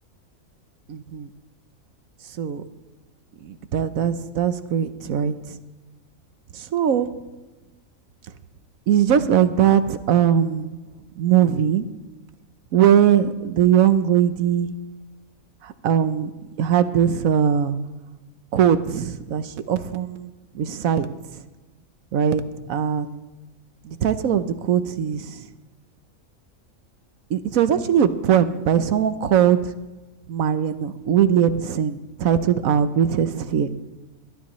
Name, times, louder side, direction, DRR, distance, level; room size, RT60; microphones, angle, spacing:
voice 1, 0.9-1.3 2.4-2.6 3.4-5.6 6.5-7.1 8.9-10.8 11.2-11.9 12.7-14.8 15.6-16.3 16.6-17.8 18.5-21.1 22.1-22.4 22.7-23.2 23.8-25.5 27.3-29.7 30.3-33.7, right 9 dB, 75° right, 12 dB, 1.2 m, -20 dB
21.0 x 12.5 x 3.1 m, 1.1 s
omnidirectional pair, 1.5 m